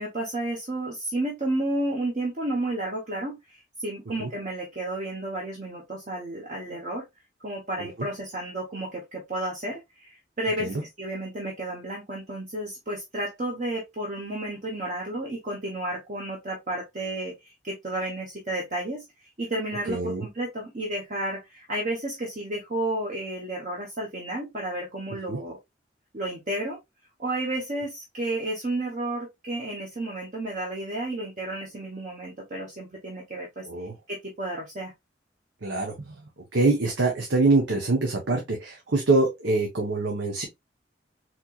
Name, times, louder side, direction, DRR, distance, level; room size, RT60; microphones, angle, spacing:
voice 1, 0.0-7.0 7.4-19.0 19.4-25.6 26.1-26.8 27.2-33.7 34.1-34.9, right 1 dB, 40° right, 0.9 m, -32 dB
voice 2, 19.9-20.2 25.3-25.4 33.6-33.9 35.6-36.1 36.5-40.4, right 3 dB, 75° right, 0.9 m, -24 dB
4.2 x 3.0 x 2.3 m
head